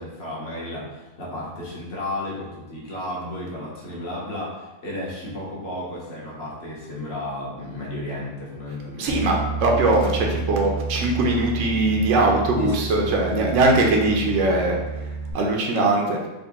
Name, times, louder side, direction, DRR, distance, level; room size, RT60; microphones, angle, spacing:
voice 1, 0.0-9.2 12.6-13.1 13.4-13.5, left 1 dB, 45° left, -5 dB, 1.1 m, -33 dB
voice 2, 8.9-15.1 15.3-16.2, right 2 dB, 65° right, 0 dB, 0.7 m, -21 dB
Bass guitar, 9.1-15.3, right 4 dB, 85° right, 1.2 m, -30 dB
3.7 x 2.2 x 3.6 m, 1.1 s
omnidirectional pair, 1.8 m